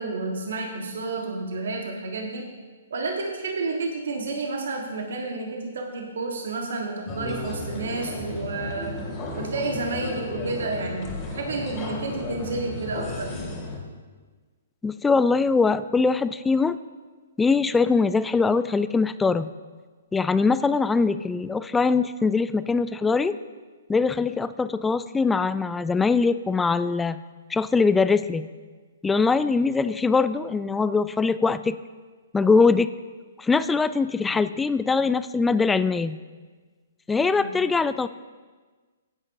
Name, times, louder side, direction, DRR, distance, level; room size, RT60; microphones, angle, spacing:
voice 1, 0.0-2.4 2.9-9.0 9.4-13.4 37.4-37.5, right 3 dB, 70° right, 1 dB, 1.4 m, -30 dB
sound 1, 7.1-13.8, left 2 dB, 25° left, 2.5 m, -34 dB
voice 2, 14.8-16.8 17.4-19.5 20.1-23.4 23.9-27.2 27.5-28.4 29.0-31.8 32.3-32.9 33.4-36.2 37.1-38.1, left 4 dB, 10° left, 14 dB, 0.3 m, -22 dB
16.0 x 9.6 x 2.7 m, 1.4 s
hypercardioid pair, 130°, 0 cm